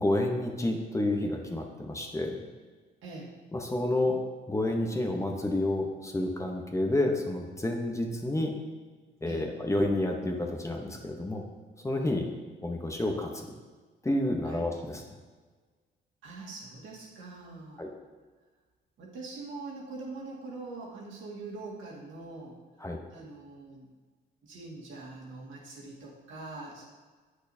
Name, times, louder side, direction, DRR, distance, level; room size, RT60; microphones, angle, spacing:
voice 1, 0.0-2.4 3.5-4.2 4.5-8.5 9.2-11.5 11.8-12.3 12.6-13.5 14.0-15.0 17.8-17.9 22.8-23.0, left 1 dB, 15° left, 2 dB, 0.9 m, -29 dB
voice 2, 3.0-3.3 9.3-9.4 14.5-14.7 16.2-17.9 19.0-22.6 23.1-23.9 24.4-26.8, right 3 dB, 80° right, -4 dB, 1.9 m, -43 dB
8.4 x 6.3 x 2.7 m, 1.4 s
cardioid pair, 90°, 20 cm